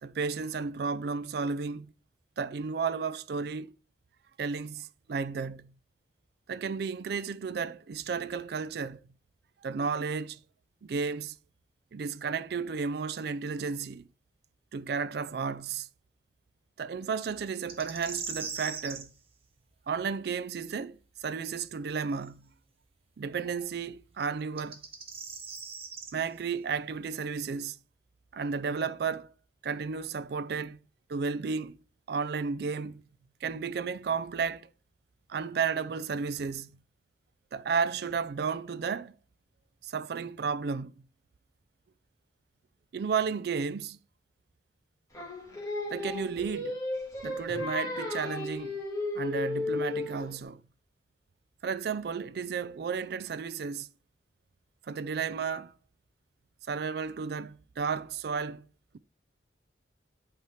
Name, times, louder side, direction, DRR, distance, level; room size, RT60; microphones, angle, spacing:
voice 1, 0.0-1.9 2.4-3.7 4.4-5.7 6.5-9.0 9.6-10.4 10.8-11.4 11.9-14.1 14.7-15.9 16.8-19.1 19.9-22.5 23.2-24.8 26.1-27.8 28.3-29.3 29.6-30.8 31.1-31.8 32.1-33.0 33.4-34.7 35.3-36.7 37.5-39.2 39.8-40.9 42.9-44.0 45.9-46.8 47.2-48.8 49.1-50.6 51.6-53.9 54.9-55.7 56.7-58.7, right 5 dB, 60° right, 0.4 m, -33 dB
sound 1, 17.7-19.1 22.2-22.3 24.4-26.1, right 5 dB, 30° right, 1.0 m, -39 dB
Singing, 45.1-50.4, left 2 dB, 20° left, 1.7 m, -34 dB
8.3 x 3.5 x 4.4 m
head